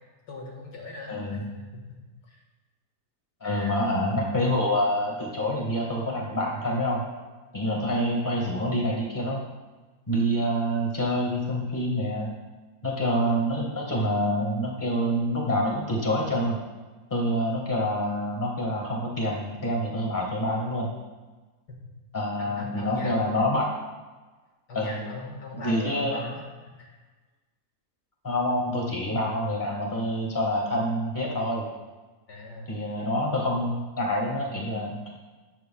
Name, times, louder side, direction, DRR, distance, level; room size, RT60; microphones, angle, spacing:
voice 1, 0.3-2.0 2.3-2.4 3.4-3.8 7.6-7.9 13.2-13.4 21.7-21.8 22.4-23.5 24.7-27.0 32.3-33.5, left 2 dB, 85° left, -1 dB, 2.2 m, -40 dB
voice 2, 1.1-1.4 3.4-7.0 7.5-9.4 10.1-12.3 12.8-16.6 17.1-20.9 22.1-23.7 24.7-25.0 25.6-26.2 28.2-31.6 32.7-35.0, equal, 10° left, -2 dB, 1.4 m, -27 dB
12.5 x 8.1 x 2.3 m, 1.3 s
omnidirectional pair, 1.8 m